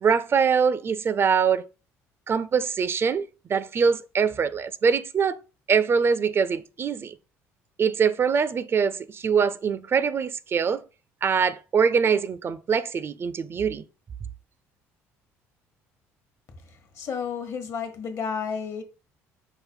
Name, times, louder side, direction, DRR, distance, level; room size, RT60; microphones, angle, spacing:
voice 1, 0.0-1.7 2.3-5.4 5.7-7.1 7.8-10.8 11.2-13.8, right 6 dB, 40° right, 0.4 m, -23 dB
voice 2, 17.0-18.8, left 6 dB, 55° left, 1.0 m, -31 dB
5.0 x 2.1 x 4.4 m
supercardioid pair, 75°, 6 cm